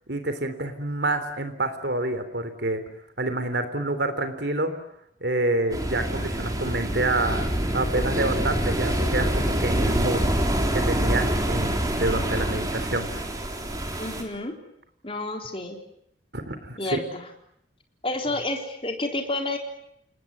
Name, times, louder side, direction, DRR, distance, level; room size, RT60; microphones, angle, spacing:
voice 1, 0.1-2.8 3.2-4.7 5.2-7.5 7.7-10.2 10.7-13.1 16.3-17.0, right 2 dB, 60° right, 9 dB, 3.6 m, -27 dB
sound 1, 5.7-14.2, right 1 dB, 20° right, 3.9 m, -26 dB
voice 2, 14.0-14.5 15.0-15.8 16.8-17.2 18.0-19.6, left 2 dB, 30° left, 3 dB, 4.0 m, -30 dB
29.0 x 19.5 x 9.5 m, 0.74 s
head